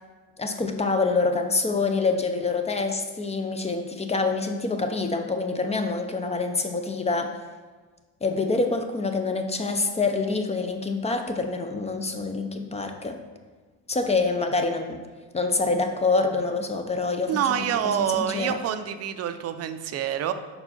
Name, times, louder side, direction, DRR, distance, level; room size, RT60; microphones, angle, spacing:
voice 1, 0.4-7.4 8.2-13.2 13.9-15.0 15.3-18.6, left 3 dB, 15° left, 5 dB, 0.4 m, -26 dB
voice 2, 17.3-20.3, right 9 dB, 40° right, 10 dB, 0.5 m, -26 dB
5.4 x 4.4 x 4.2 m, 1.4 s
cardioid pair, 105°, 39 cm